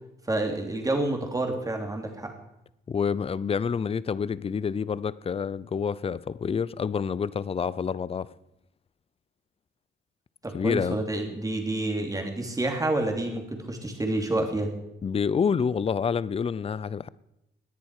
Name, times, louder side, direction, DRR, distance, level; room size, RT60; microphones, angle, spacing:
voice 1, 0.3-2.3 10.4-14.7, right 2 dB, 15° right, 2.9 m, -28 dB
voice 2, 2.9-8.3 10.5-11.0 15.0-17.1, left 6 dB, 30° left, 0.5 m, -28 dB
17.5 x 10.0 x 4.8 m
cardioid pair, 90°, 20 cm